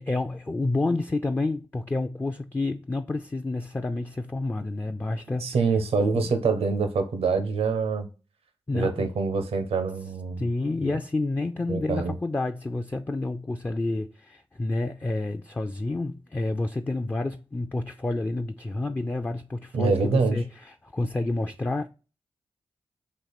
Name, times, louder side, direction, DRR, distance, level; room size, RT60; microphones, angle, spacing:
voice 1, 0.0-5.6 6.2-6.3 8.7-9.1 10.4-21.9, left 2 dB, 20° left, 0.4 m, -29 dB
voice 2, 5.4-8.1 8.7-10.4 11.7-12.1 19.7-20.4, right 4 dB, 85° right, 0.7 m, -25 dB
4.4 x 2.9 x 4.0 m
supercardioid pair, 40°, 10 cm